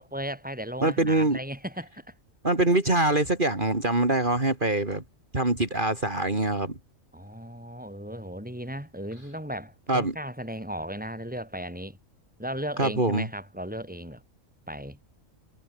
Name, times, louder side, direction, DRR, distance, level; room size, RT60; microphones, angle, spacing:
voice 1, 0.0-2.1 7.1-12.0 12.4-14.2 14.7-15.0, equal, 5° right, 6.6 m, -36 dB
voice 2, 0.8-1.4 2.4-5.0 5.3-6.7 9.9-10.1 12.8-13.2, right 2 dB, 35° right, 3.7 m, -24 dB
omnidirectional pair, 1.4 m